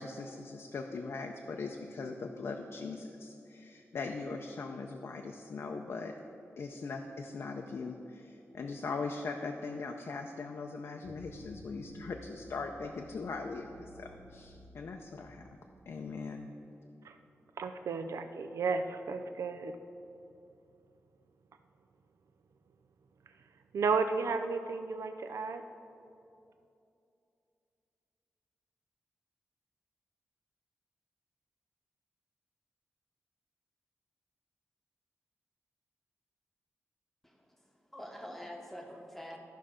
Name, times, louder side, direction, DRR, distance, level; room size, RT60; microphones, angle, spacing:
voice 1, 0.0-6.1 6.6-15.4 15.9-16.5, left 4 dB, 60° left, 3 dB, 0.5 m, -40 dB
sound 1, 11.0-16.2, equal, 25° right, 0.7 m, -55 dB
voice 2, 17.6-19.7 23.7-25.6, right 4 dB, 80° right, 8 dB, 0.4 m, -33 dB
voice 3, 37.2-39.4, equal, 5° left, 1 dB, 1.0 m, -46 dB
13.0 x 5.7 x 5.0 m, 2.7 s
wide cardioid pair, 150°, 5 cm